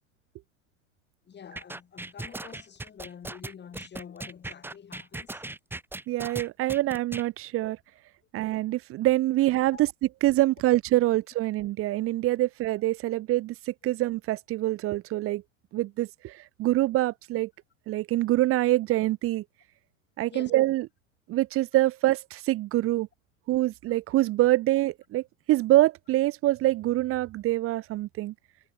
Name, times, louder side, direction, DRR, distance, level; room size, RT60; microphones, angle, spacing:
voice 1, 1.3-5.4 6.4-6.5 9.7-9.8 20.3-20.6 23.9-24.0, left 8 dB, 25° left, 5.1 m, -47 dB
sound 1, 1.6-7.3, right 2 dB, 5° right, 1.3 m, -38 dB
voice 2, 6.1-7.8 8.3-9.9 10.2-15.4 15.7-17.5 17.9-19.4 20.2-20.9 21.3-23.1 23.5-28.3, right 16 dB, 35° right, 0.9 m, -25 dB
hypercardioid pair, 90°, 41 cm